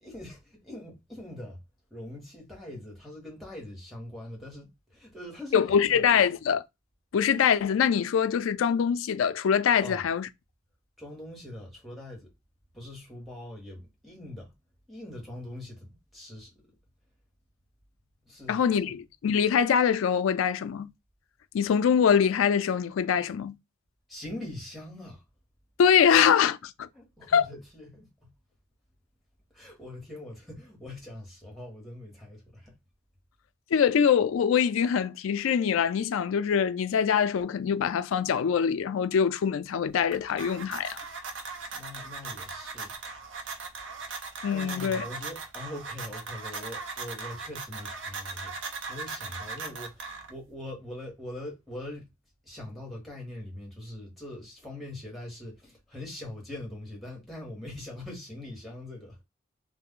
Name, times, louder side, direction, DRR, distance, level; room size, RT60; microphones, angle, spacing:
voice 1, 0.0-1.6 1.9-6.2 9.8-10.0 11.0-12.3 12.7-14.5 14.9-16.5 18.2-18.9 24.1-25.2 26.9-28.3 29.5-32.7 41.7-42.9 44.5-52.0 52.4-59.2, left 1 dB, ahead, 1.2 m, -42 dB
voice 2, 5.5-6.6 7.1-10.3 18.5-20.9 21.5-23.6 25.8-26.9 27.3-27.4 33.7-41.0 44.4-45.0, left 7 dB, 75° left, 0.3 m, -24 dB
sound 1, 39.9-50.5, right 4 dB, 65° right, 0.5 m, -39 dB
2.4 x 2.0 x 3.6 m
head